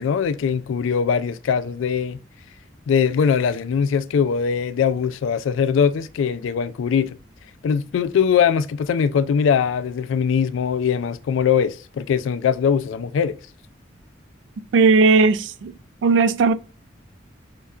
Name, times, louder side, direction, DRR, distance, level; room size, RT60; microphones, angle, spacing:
voice 1, 0.0-2.2 2.9-7.2 7.6-13.4, left 7 dB, 85° left, 0.3 m, -21 dB
voice 2, 14.7-15.7 16.0-16.5, right 4 dB, 70° right, 0.3 m, -16 dB
5.3 x 2.3 x 2.4 m
head